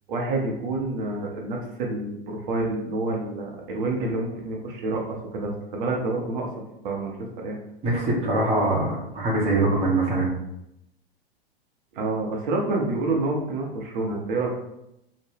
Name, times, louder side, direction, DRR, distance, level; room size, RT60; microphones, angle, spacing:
voice 1, 0.1-6.5 6.8-7.6 11.9-14.6, right 2 dB, 55° right, 0 dB, 0.7 m, -28 dB
voice 2, 7.8-10.3, right 2 dB, 20° right, -4 dB, 0.8 m, -23 dB
2.8 x 2.1 x 3.3 m, 0.84 s
figure-of-eight pair, 100°, 30 cm